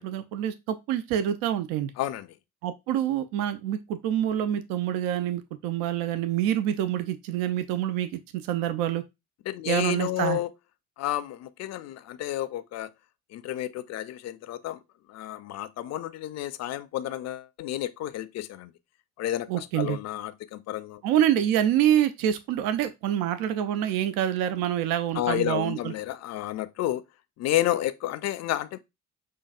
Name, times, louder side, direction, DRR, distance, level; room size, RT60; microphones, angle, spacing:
voice 1, 0.0-1.9 2.6-9.0 9.7-10.4 19.5-20.0 21.0-25.9, right 11 dB, 65° right, 0.5 m, -26 dB
voice 2, 2.0-2.3 9.5-10.5 11.0-12.9 13.3-14.8 15.1-18.7 19.2-21.0 25.1-27.0 27.4-28.8, left 13 dB, 45° left, 0.5 m, -31 dB
5.6 x 2.6 x 2.3 m
hypercardioid pair, 50°, 38 cm